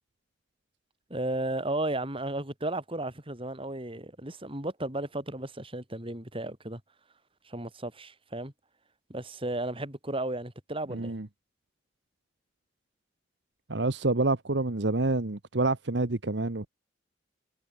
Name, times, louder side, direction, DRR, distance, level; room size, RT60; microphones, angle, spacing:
voice 1, 1.1-6.8 7.4-8.5 9.1-11.2, right 1 dB, 30° right, 5.2 m, -34 dB
voice 2, 10.9-11.3 13.7-16.7, right 2 dB, 70° right, 1.2 m, -27 dB
head